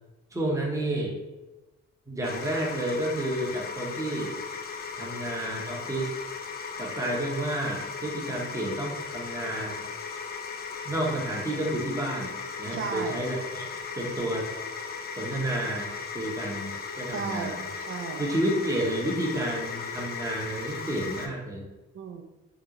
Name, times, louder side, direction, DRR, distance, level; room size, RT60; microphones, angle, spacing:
voice 1, 0.3-1.1 2.1-4.4 5.0-6.2 6.8-9.8 10.8-12.3 12.6-13.7 14.0-14.5 15.1-15.9 16.1-16.7 17.0-17.7 18.2-21.6, right 1 dB, 10° right, -2 dB, 0.8 m, -30 dB
sound 1, 2.2-21.3, left 5 dB, 35° left, 0.4 m, -37 dB
voice 2, 12.7-13.2 17.1-18.3 21.9-22.2, right 6 dB, 45° right, 6 dB, 0.5 m, -34 dB
2.9 x 2.0 x 3.6 m, 1.1 s
cardioid pair, 90°, 30 cm